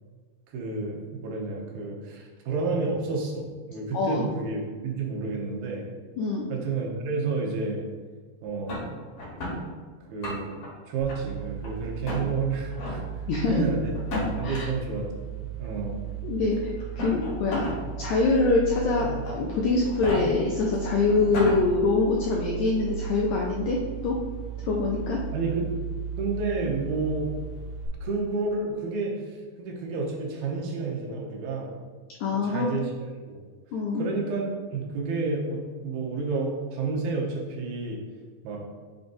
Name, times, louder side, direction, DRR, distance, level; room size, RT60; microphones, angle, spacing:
voice 1, 0.5-5.8 6.5-7.9 8.4-8.8 10.1-10.6 10.9-13.9 14.4-15.3 15.6-16.0 25.3-25.7 26.2-27.3 28.0-31.7 32.3-32.9 33.2-33.4 33.9-38.0 38.4-38.6, right 3 dB, 85° right, -1 dB, 2.8 m, -30 dB
voice 2, 6.2-6.5 13.3-13.6 14.4-14.7 16.2-16.7 17.0-17.7 18.0-24.2 24.7-25.2 32.2-32.7 33.7-34.1, left 3 dB, 85° left, -2 dB, 1.7 m, -24 dB
sound 1, 8.7-9.6 10.0-10.7 11.1-11.7 12.0-12.2 12.7-13.0 13.9-14.6 15.6-15.7 16.8-17.8 18.2-18.3 19.0-19.3 19.8-20.2 20.7-20.8 21.1-21.6, left 2 dB, 50° left, 2.3 m, -32 dB
sound 2, 11.0-27.9, right 8 dB, 65° right, 2.3 m, -36 dB
6.7 x 5.3 x 2.6 m, 1.4 s
omnidirectional pair, 4.1 m